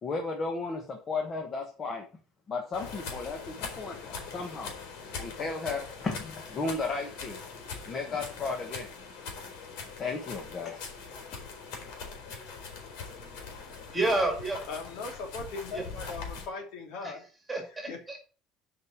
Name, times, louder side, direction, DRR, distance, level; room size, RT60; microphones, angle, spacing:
voice 1, 0.0-2.0 2.5-4.7 5.2-7.4 7.9-8.9 10.0-10.8, left 3 dB, 25° left, 3 dB, 1.4 m, -34 dB
sound 1, 2.7-16.5, left 5 dB, 85° left, 3.6 m, -42 dB
voice 2, 13.9-14.6 15.7-15.9 17.0-17.2 17.5-18.2, right 2 dB, 10° right, 2 dB, 2.5 m, -29 dB
voice 3, 14.7-17.2 17.9-18.2, left 3 dB, 60° left, 3 dB, 2.7 m, -39 dB
7.9 x 5.3 x 7.1 m, 0.38 s
cardioid pair, 170°, 0 cm